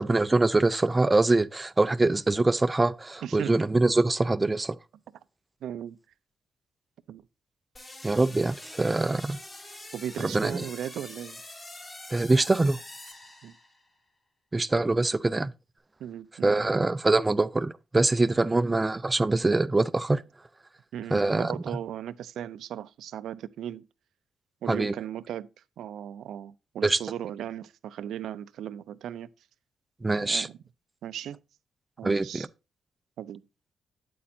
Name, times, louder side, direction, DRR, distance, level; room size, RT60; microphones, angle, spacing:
voice 1, 0.0-4.8 8.0-9.4 10.2-10.6 12.1-12.8 14.5-15.5 16.4-20.2 21.1-21.5 24.7-24.9 26.8-27.0 30.0-30.5 32.0-32.5, right 2 dB, 20° right, 0.4 m, -24 dB
voice 2, 3.2-3.6 5.6-6.0 7.1-7.2 9.9-11.4 13.4-13.5 16.0-16.8 18.5-18.7 20.9-23.8 24.6-25.5 25.8-29.3 30.2-30.6 31.0-31.4 32.0-32.5 33.2-33.4, right 10 dB, 80° right, 0.5 m, -37 dB
sound 1, 7.7-14.0, left 1 dB, 30° left, 3.3 m, -45 dB
8.5 x 8.5 x 2.7 m
cardioid pair, 90°, 0 cm